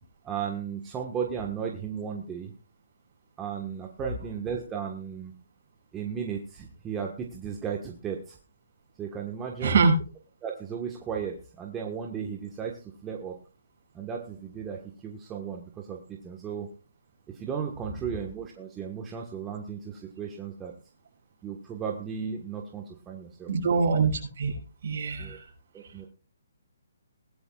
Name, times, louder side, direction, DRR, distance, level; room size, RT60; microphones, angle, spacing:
voice 1, 0.2-2.5 3.4-5.3 5.9-8.4 9.0-9.8 10.4-13.4 13.9-16.7 17.3-20.7 21.4-23.8 25.2-25.4 25.7-26.1, right 7 dB, 15° right, 1 dB, 1.4 m, -35 dB
voice 2, 9.6-9.9 23.5-24.5 24.8-25.4, right 5 dB, 50° right, 0 dB, 6.9 m, -24 dB
19.5 x 12.0 x 2.4 m, 0.35 s
hypercardioid pair, 155°, 0 cm